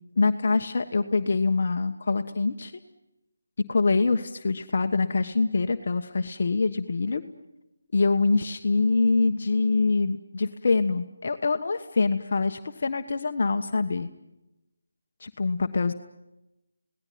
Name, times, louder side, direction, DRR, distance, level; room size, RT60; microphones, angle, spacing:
voice 1, 0.2-2.7 3.7-7.2 7.9-14.1 15.2-15.9, left 3 dB, 50° left, 6 dB, 1.3 m, -24 dB
29.5 x 18.5 x 9.5 m, 0.94 s
figure-of-eight pair, 165°, 0 cm